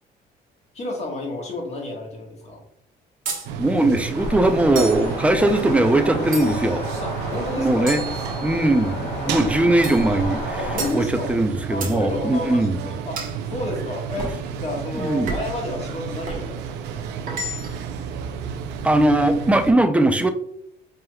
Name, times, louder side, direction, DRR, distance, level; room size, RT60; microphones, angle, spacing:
voice 1, 0.7-2.6 7.0-8.0 9.3-9.4 10.6-11.3 11.7-13.2 13.5-14.3 14.6-17.1, left 1 dB, 40° left, 0 dB, 1.3 m, -30 dB
sound 1, 3.3-3.5 4.8-5.1 6.3-6.8 7.9-8.8 9.8-10.1 10.8-11.0 11.8-12.0 13.2-13.4 14.2-14.4 15.3-15.6 16.3-16.5 17.3-17.9, right 3 dB, 55° right, 1.1 m, -32 dB
sound 2, 3.4-19.7, right 7 dB, 85° right, 0.5 m, -32 dB
voice 2, 3.6-6.8 7.5-8.0 8.4-10.6 10.9-12.9 14.9-15.3 18.8-20.3, right 1 dB, 10° right, 8 dB, 0.4 m, -20 dB
sound 3, 4.1-10.9, equal, 75° left, 1.5 m, -32 dB
4.5 x 3.5 x 2.2 m, 0.71 s
cardioid pair, 110°, 17 cm